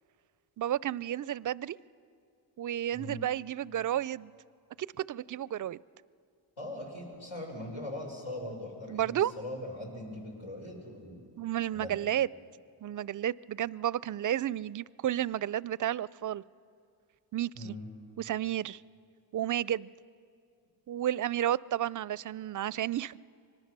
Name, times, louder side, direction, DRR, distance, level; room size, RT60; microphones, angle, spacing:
voice 1, 0.6-1.8 2.6-4.3 5.0-5.8 8.9-9.3 11.4-12.3 12.8-16.4 17.3-17.8 18.2-18.8 19.3-19.9 20.9-23.2, right 11 dB, 45° right, 22 dB, 0.4 m, -32 dB
voice 2, 2.9-3.3 6.6-11.2 11.7-12.0 17.5-17.9, left 1 dB, 80° left, -2 dB, 6.1 m, -41 dB
25.0 x 19.0 x 6.8 m, 2.3 s
cardioid pair, 45°, 47 cm